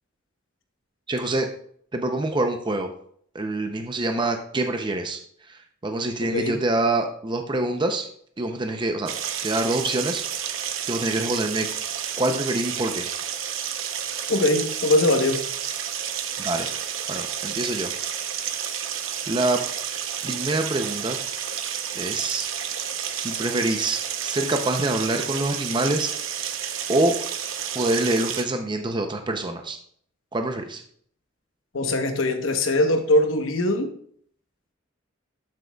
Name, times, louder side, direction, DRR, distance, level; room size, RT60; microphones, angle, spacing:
voice 1, 1.1-1.5 1.9-2.9 3.3-5.2 5.5-8.1 8.4-9.1 9.4-10.5 10.9-11.7 12.2-13.1 16.4-16.7 17.1-17.9 19.3-19.6 20.2-21.2 21.9-22.5 23.2-26.1 26.9-27.2 27.7-29.8 30.3-30.8, right 2 dB, 25° right, 5 dB, 0.6 m, -25 dB
voice 2, 6.2-6.6 14.3-15.4 31.7-33.9, left 1 dB, 80° left, 6 dB, 1.0 m, -21 dB
sound 1, 9.1-28.4, right 9 dB, 85° right, 0.7 m, -30 dB
12.0 x 6.3 x 2.3 m, 0.62 s
head